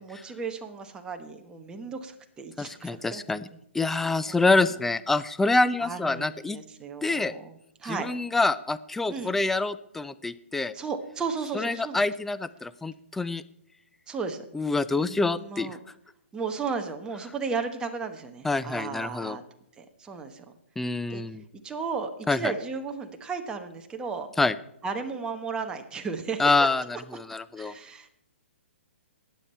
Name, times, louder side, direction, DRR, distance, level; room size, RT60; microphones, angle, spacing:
voice 1, 0.0-3.2 4.3-4.5 5.8-8.1 9.1-9.3 10.7-12.0 14.1-14.4 15.0-15.8 16.3-19.4 19.8-20.4 21.1-21.2 21.6-24.3 24.8-26.4 27.6-28.1, right 5 dB, 10° right, 5 dB, 1.1 m, -34 dB
voice 2, 2.6-3.5 3.7-6.6 7.0-7.3 7.8-10.7 11.5-13.4 14.5-15.8 18.4-19.4 20.8-21.4 22.3-22.5 24.4-24.5 26.4-27.7, left 3 dB, 5° left, 14 dB, 0.3 m, -26 dB
20.0 x 7.3 x 4.4 m, 0.77 s
hypercardioid pair, 150°, 7 cm